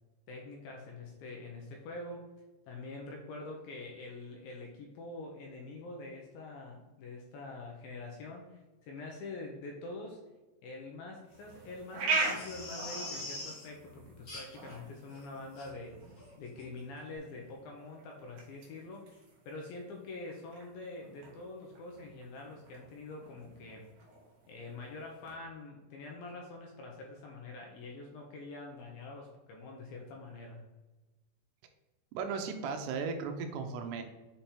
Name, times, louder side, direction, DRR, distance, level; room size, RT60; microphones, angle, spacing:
voice 1, 0.3-2.3 2.7-10.2 10.6-16.0 16.4-23.9 24.5-30.6, left 2 dB, 80° left, 0 dB, 2.3 m, -45 dB
sound 1, 11.3-25.4, right 3 dB, 65° right, 2.1 m, -41 dB
Crying sobbing, 12.1-13.6 14.3-14.7 15.1-15.2 15.5-15.7 16.2-16.3 16.6-16.7, left 2 dB, 50° left, 1.1 m, -43 dB
voice 2, 32.1-34.0, right 5 dB, 85° right, 6 dB, 2.8 m, -36 dB
7.2 x 3.4 x 4.3 m, 1.2 s
omnidirectional pair, 4.9 m